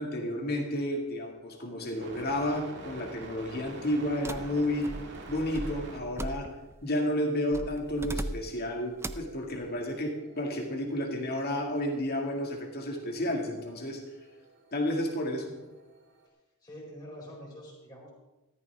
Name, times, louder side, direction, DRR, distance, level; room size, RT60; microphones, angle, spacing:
voice 1, 0.0-4.9 5.3-6.5 6.8-14.0 14.7-15.5, left 1 dB, 45° left, 2 dB, 2.2 m, -31 dB
sound 1, 1.2-16.3, right 2 dB, 55° right, 2.1 m, -50 dB
sound 2, 4.2-6.8 7.5-8.6 9.0-9.4, right 1 dB, 10° right, 0.4 m, -39 dB
voice 2, 16.6-18.1, equal, 20° left, -3 dB, 4.5 m, -45 dB
14.0 x 13.5 x 3.6 m, 1.0 s
head